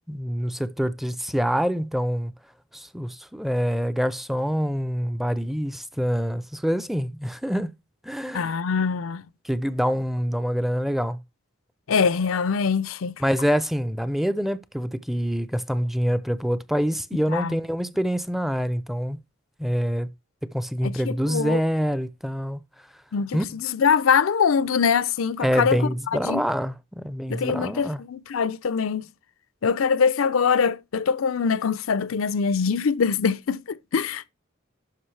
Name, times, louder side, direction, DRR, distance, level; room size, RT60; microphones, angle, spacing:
voice 1, 0.1-2.3 2.7-7.7 8.0-8.5 9.4-11.2 13.2-19.2 19.6-20.1 20.4-22.6 23.3-23.5 25.4-28.0, equal, ahead, 0.4 m, -26 dB
voice 2, 8.3-9.2 11.9-13.2 17.3-17.5 20.8-21.6 23.1-25.8 26.3-26.4 27.3-29.1 29.6-34.3, left 6 dB, 80° left, 0.5 m, -23 dB
11.5 x 5.1 x 3.2 m
head